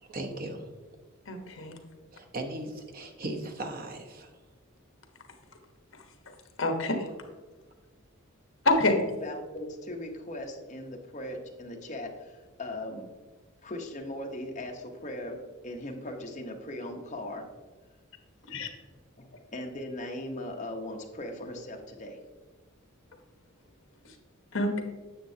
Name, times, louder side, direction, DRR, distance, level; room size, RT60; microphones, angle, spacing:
voice 1, 0.0-0.7 2.1-4.3, right 1 dB, 45° right, 5 dB, 0.9 m, -37 dB
voice 2, 1.3-1.8 6.6-7.0 8.6-9.0 18.5-18.7 24.5-24.8, left 2 dB, 65° left, 5 dB, 1.2 m, -26 dB
voice 3, 9.2-13.1 13.6-17.5 19.2-22.2, left 1 dB, 35° left, 2 dB, 1.0 m, -39 dB
9.9 x 7.4 x 2.8 m, 1.3 s
head